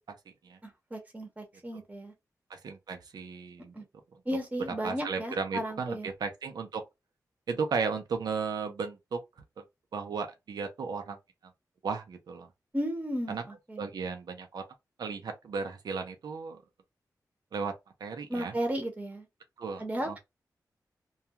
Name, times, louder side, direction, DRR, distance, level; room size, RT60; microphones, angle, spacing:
voice 1, 0.6-2.1 3.7-3.8 4.3-6.1 12.7-13.9 18.3-19.3 19.8-20.2, equal, 20° right, 0.8 m, -34 dB
voice 2, 2.5-3.7 4.8-6.8 7.5-9.2 9.6-9.7 9.9-11.2 11.8-12.5 13.3-13.4 13.8-14.6 15.0-16.6 17.5-17.7 18.0-18.5 19.6-20.2, right 5 dB, 85° right, 0.6 m, -35 dB
2.3 x 2.3 x 2.8 m
wide cardioid pair, 90°, 7 cm